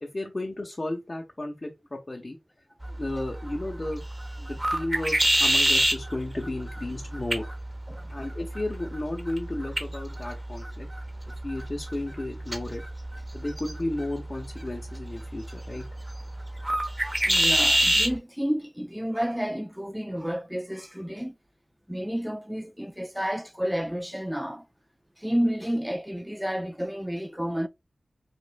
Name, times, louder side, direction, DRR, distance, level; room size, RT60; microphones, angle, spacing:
voice 1, 0.0-2.4 2.9-4.0 4.4-7.5 8.1-10.9 11.4-12.8 13.3-15.8, left 1 dB, 40° left, 0.8 m, -33 dB
sound 1, 2.8-18.2, right 1 dB, 25° right, 0.9 m, -28 dB
voice 2, 17.2-21.4 21.9-24.7 25.2-27.7, equal, 5° right, 0.4 m, -30 dB
5.2 x 2.4 x 2.2 m
cardioid pair, 40°, 0 cm